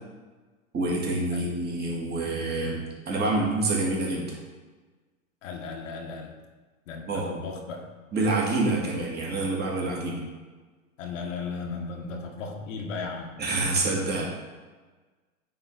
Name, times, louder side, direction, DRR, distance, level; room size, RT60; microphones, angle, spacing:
voice 1, 0.7-4.3 7.1-7.4 8.1-10.2 13.4-14.3, right 2 dB, 25° right, -3 dB, 2.1 m, -27 dB
voice 2, 5.4-6.4 6.9-7.9 11.0-13.3, left 4 dB, 65° left, 2 dB, 1.3 m, -36 dB
9.2 x 3.9 x 4.0 m, 1.3 s
hypercardioid pair, 105°, 40 cm